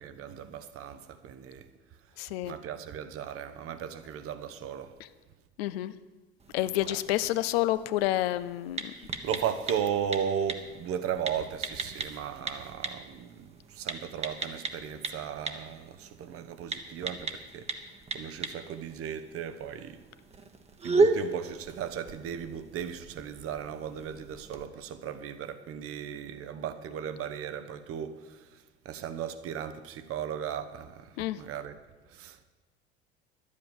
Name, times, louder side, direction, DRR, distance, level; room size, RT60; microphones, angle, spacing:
voice 1, 0.0-1.7 2.4-4.9 6.8-7.0 8.9-17.7 18.1-20.0 20.8-31.8 32.1-32.4, right 8 dB, 40° right, 1.0 m, -36 dB
voice 2, 2.2-2.5 5.6-5.9 6.5-8.9 31.2-31.4, left 15 dB, 65° left, 0.6 m, -29 dB
sound 1, 6.4-24.7, right 3 dB, 20° right, 1.2 m, -36 dB
11.5 x 8.4 x 6.8 m
figure-of-eight pair, 70°, 33 cm